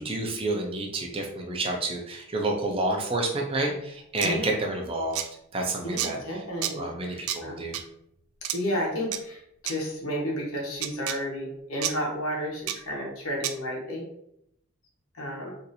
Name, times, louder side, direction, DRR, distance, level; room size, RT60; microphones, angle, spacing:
voice 1, 0.0-5.2 5.5-6.2 6.7-7.8, right 2 dB, 25° right, 1 dB, 0.5 m, -29 dB
sound 1, 4.2-4.3 5.1-5.3 6.0-6.1 6.6-6.7 7.3-7.4 7.7-7.8 8.4-8.6 9.1-9.2 9.7-9.8 10.8-11.2 11.8-11.9 12.7-12.8 13.4-13.5, right 11 dB, 85° right, 0.3 m, -29 dB
voice 2, 5.8-7.6 8.5-14.0 15.1-15.5, equal, 80° left, -2 dB, 1.0 m, -32 dB
2.7 x 2.5 x 4.0 m, 0.76 s
head